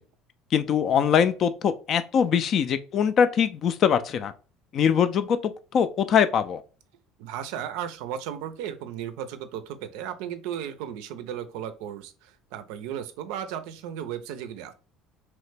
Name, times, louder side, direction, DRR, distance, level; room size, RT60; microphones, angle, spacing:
voice 1, 0.5-4.3 4.7-6.6, left 7 dB, 45° left, 0.3 m, -22 dB
voice 2, 7.2-14.7, right 9 dB, 80° right, 0.4 m, -35 dB
2.9 x 2.1 x 3.2 m
supercardioid pair, 110°, 0 cm